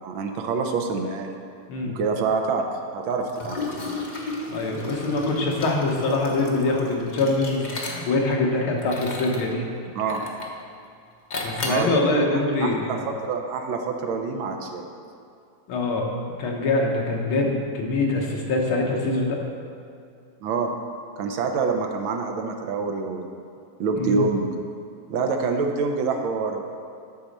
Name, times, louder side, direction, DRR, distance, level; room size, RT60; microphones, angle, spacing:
voice 1, 0.0-1.4 1.9-2.7 2.9-3.9 9.9-10.2 11.6-14.9 20.4-20.7 21.2-23.3 23.8-24.5 25.1-26.6, right 4 dB, 75° right, 4 dB, 1.6 m, -26 dB
Liquid, 3.3-8.3 8.8-9.5 10.1-10.6 11.3-11.9, left 2 dB, 40° left, 0.7 m, -33 dB
voice 2, 4.5-9.6 11.4-13.2 15.7-16.1 16.4-19.4 23.9-24.2, left 2 dB, 85° left, -1 dB, 2.1 m, -24 dB
11.0 x 4.2 x 6.5 m, 2.4 s
omnidirectional pair, 2.3 m